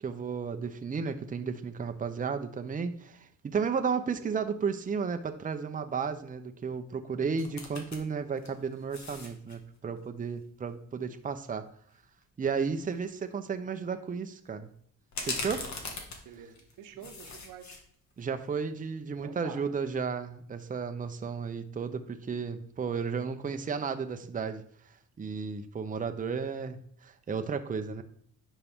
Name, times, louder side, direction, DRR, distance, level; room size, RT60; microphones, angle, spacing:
voice 1, 0.0-11.6 12.4-14.7 15.2-15.6 18.2-24.6 25.2-26.8 27.0-28.0, right 5 dB, 25° right, 7 dB, 0.7 m, -33 dB
sound 1, 7.4-8.0 8.4-9.6 12.2-12.3 12.7-12.9 15.1-16.7 17.0-17.8 18.2-18.3, left 3 dB, 65° left, 1.8 m, -39 dB
voice 2, 16.2-17.8 19.2-19.6, right 8 dB, 90° right, 5 dB, 1.1 m, -47 dB
9.5 x 5.6 x 3.6 m, 0.63 s
cardioid pair, 90°, 30 cm